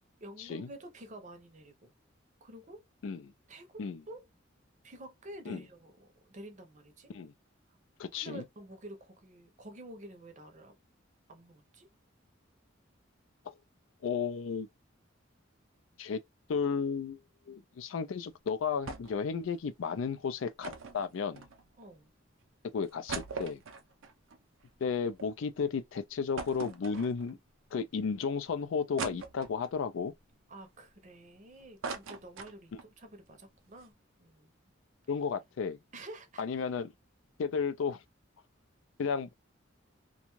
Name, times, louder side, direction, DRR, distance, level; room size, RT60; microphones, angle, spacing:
voice 1, 0.2-1.9 2.4-2.9 3.5-4.2 4.8-7.1 7.7-7.8 8.1-10.8 11.3-11.9 21.8-22.1 30.5-34.7 35.9-36.6, right 1 dB, 40° right, 0.6 m, -49 dB
voice 2, 8.0-8.4 14.0-14.7 16.0-16.2 16.5-17.2 17.5-21.5 22.7-23.6 24.8-27.4 27.7-30.1 35.1-35.8 36.4-36.9 37.4-38.0 39.0-39.3, left 5 dB, 75° left, 0.4 m, -33 dB
sound 1, 18.9-19.3 19.6-19.7 20.6-21.9 22.4-22.5 22.8-25.3 25.7-25.8 26.4-27.5 28.0-28.1 29.0-29.8 30.4-31.3 31.6-32.9 33.3-33.4 33.6-33.9, right 4 dB, 85° right, 0.5 m, -41 dB
2.5 x 2.2 x 3.0 m
head